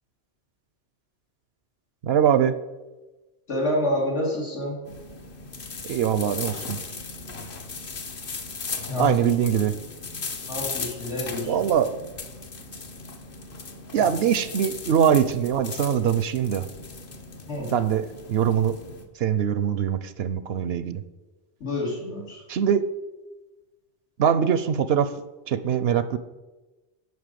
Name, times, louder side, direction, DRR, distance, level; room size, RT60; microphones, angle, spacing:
voice 1, 2.0-2.5 5.8-6.8 9.0-9.7 11.5-11.9 13.9-16.7 17.7-18.7 19.2-21.0 22.5-22.8 24.2-25.1 25.5-26.2, right 8 dB, 65° right, 13 dB, 0.8 m, -22 dB
voice 2, 3.5-4.8 8.9-9.3 10.5-11.5 17.5-17.7 21.6-22.4, left 1 dB, 80° left, -3 dB, 3.0 m, -28 dB
sound 1, 4.9-19.0, left 4 dB, 55° left, 1.1 m, -37 dB
9.5 x 5.5 x 6.8 m, 1.1 s
omnidirectional pair, 1.2 m